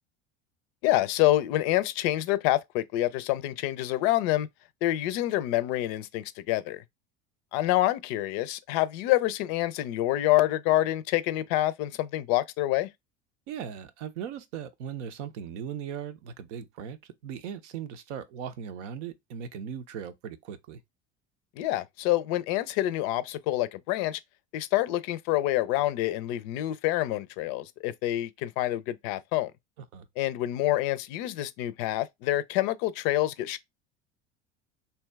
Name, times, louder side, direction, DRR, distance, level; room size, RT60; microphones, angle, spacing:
voice 1, 0.8-4.5 4.8-6.8 7.5-12.9 21.6-24.2 24.5-29.5 30.2-33.6, left 15 dB, 60° left, 0.5 m, -27 dB
voice 2, 13.5-20.8 29.9-30.1, right 8 dB, 75° right, 0.6 m, -38 dB
2.8 x 2.2 x 3.3 m
hypercardioid pair, 75°, 37 cm